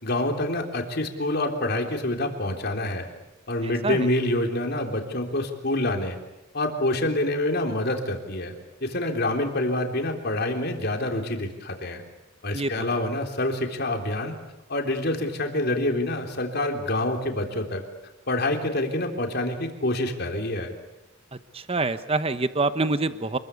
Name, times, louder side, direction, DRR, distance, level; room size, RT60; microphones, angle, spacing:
voice 1, 0.0-3.1 3.5-6.2 6.5-8.5 8.8-12.0 12.4-14.3 14.7-17.8 18.3-20.7, left 1 dB, 50° left, 3 dB, 3.6 m, -27 dB
voice 2, 3.6-4.1 12.5-12.9 21.5-23.4, right 3 dB, 30° right, 11 dB, 1.0 m, -26 dB
28.0 x 21.5 x 8.5 m, 1.0 s
head